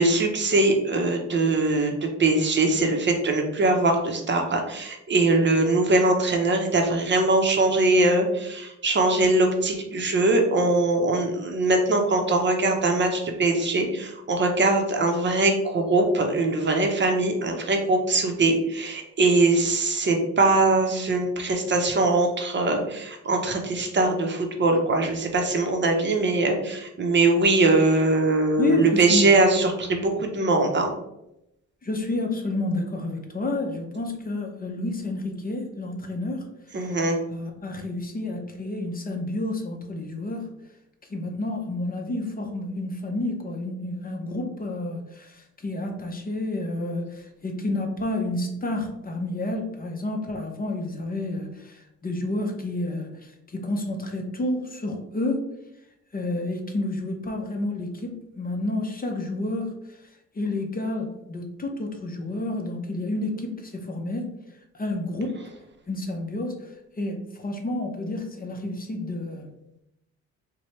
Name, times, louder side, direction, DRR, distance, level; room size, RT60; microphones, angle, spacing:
voice 1, 0.0-30.9 36.7-37.2, right 2 dB, 40° right, 2 dB, 0.7 m, -22 dB
voice 2, 28.6-29.4 31.8-37.0 37.3-40.5 41.1-55.5 56.1-60.0 60.3-64.3 64.7-65.4 65.9-69.5, left 2 dB, 30° left, 3 dB, 0.7 m, -30 dB
4.3 x 2.2 x 3.1 m, 0.84 s
cardioid pair, 90°, 30 cm